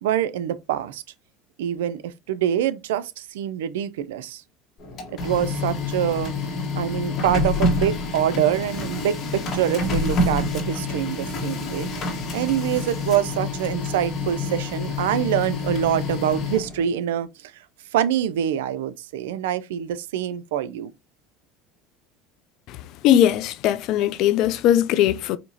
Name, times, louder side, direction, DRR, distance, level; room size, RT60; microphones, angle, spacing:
voice 1, 0.0-1.0 1.6-4.4 5.1-6.3 6.8-17.6 17.9-20.9, right 10 dB, 90° right, 0.4 m, -25 dB
Printer, 4.8-16.9, left 2 dB, 45° left, 1.5 m, -27 dB
voice 2, 23.0-25.4, left 11 dB, 60° left, 0.3 m, -19 dB
4.3 x 2.7 x 2.7 m
supercardioid pair, 105°, 0 cm